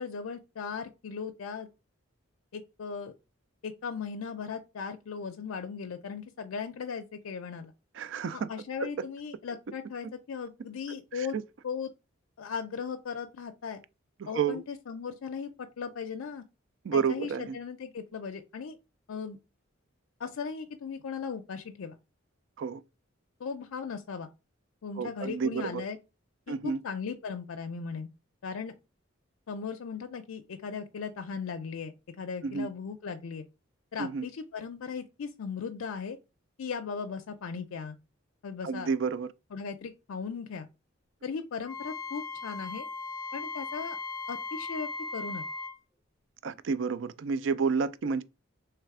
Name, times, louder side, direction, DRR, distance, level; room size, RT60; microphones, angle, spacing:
voice 1, 0.0-1.7 2.5-3.1 3.6-7.7 8.3-11.3 11.6-11.9 12.4-13.8 14.3-16.4 16.9-18.8 19.1-19.4 20.2-22.0 23.4-24.3 24.8-26.0 26.5-28.1 28.4-28.7 29.5-33.5 33.9-36.2 36.6-38.0 38.4-38.9 39.5-40.7 41.2-42.9 43.3-44.0 44.3-45.4, left 5 dB, 80° left, 0.4 m, -37 dB
voice 2, 8.0-8.5 8.8-8.9 11.2-11.4 14.2-14.6 16.8-17.6 22.6-22.8 25.0-25.8 26.5-26.8 32.4-32.7 34.0-34.2 38.6-39.3 46.4-48.2, right 5 dB, 60° right, 0.4 m, -30 dB
Wind instrument woodwind instrument, 41.6-45.8, left 3 dB, 15° left, 0.5 m, -38 dB
3.4 x 3.2 x 4.7 m
head